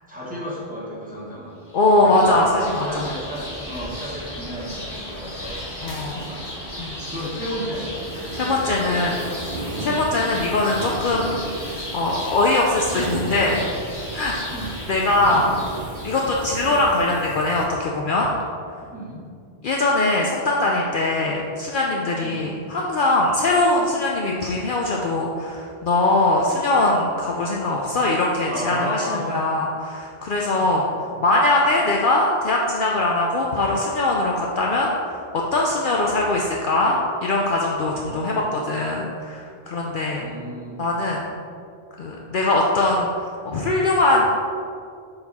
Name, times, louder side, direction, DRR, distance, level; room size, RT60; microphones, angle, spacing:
voice 1, 0.1-5.7 6.0-6.8 7.1-8.0 8.7-9.4 9.8-10.0 14.5-14.7 15.3-15.5 18.8-19.3 22.2-22.5 28.4-29.3 30.5-30.7 37.9-38.6 40.2-40.8, equal, 10° right, -7 dB, 1.5 m, -33 dB
voice 2, 1.7-3.0 5.8-6.2 6.8-7.0 8.3-9.2 9.8-11.5 11.9-13.7 14.1-14.5 14.9-15.4 16.0-18.3 19.6-30.9 31.2-40.2 40.8-41.3 42.0-44.3, left 2 dB, 60° left, -2 dB, 0.7 m, -21 dB
sound 1, 1.7-16.8, equal, 20° left, 1.6 m, -35 dB
sound 2, 8.0-17.7, right 2 dB, 55° right, 0.9 m, -35 dB
6.7 x 4.1 x 4.2 m, 2.3 s
omnidirectional pair, 1.1 m